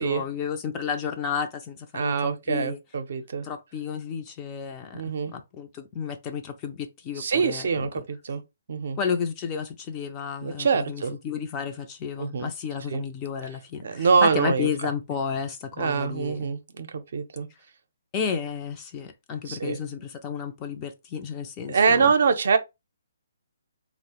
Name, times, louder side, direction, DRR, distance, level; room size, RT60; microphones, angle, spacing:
voice 1, 0.0-2.8 3.4-8.0 9.0-16.5 18.1-22.1, left 6 dB, 25° left, 0.4 m, -32 dB
voice 2, 1.9-3.5 4.9-5.3 7.2-8.4 8.7-9.0 10.4-11.2 12.2-12.5 12.9-13.0 13.8-14.7 15.8-17.5 19.5-19.8 21.7-22.6, right 5 dB, 65° right, 0.5 m, -24 dB
3.2 x 2.0 x 2.9 m
hypercardioid pair, 150°, 0 cm